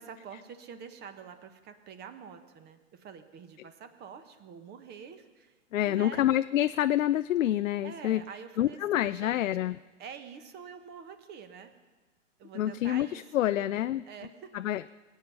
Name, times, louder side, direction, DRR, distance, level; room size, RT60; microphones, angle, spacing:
voice 1, 0.0-5.5 5.8-6.3 7.8-9.5 10.0-11.7 12.4-13.2 13.5-14.5, right 7 dB, 25° right, 9 dB, 1.3 m, -46 dB
voice 2, 5.7-8.2 8.6-9.8 12.5-14.0 14.5-14.9, left 13 dB, 75° left, 12 dB, 0.5 m, -27 dB
22.5 x 8.5 x 5.5 m, 1.2 s
hypercardioid pair, 115°, 39 cm